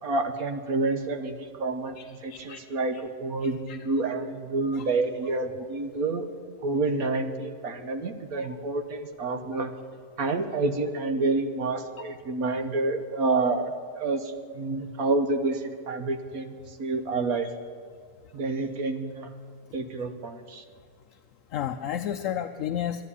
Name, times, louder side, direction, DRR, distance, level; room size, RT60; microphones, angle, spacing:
voice 1, 0.0-6.3 6.6-9.7 10.2-16.5 16.8-17.5 18.3-19.3 19.7-20.6, right 3 dB, 65° right, 8 dB, 1.5 m, -28 dB
voice 2, 2.0-2.6 2.9-3.0 3.4-3.9 4.7-4.9 8.4-8.6 12.0-12.1 21.5-23.0, left 10 dB, 65° left, 6 dB, 0.8 m, -33 dB
12.0 x 11.0 x 9.8 m, 2.2 s
omnidirectional pair, 1.7 m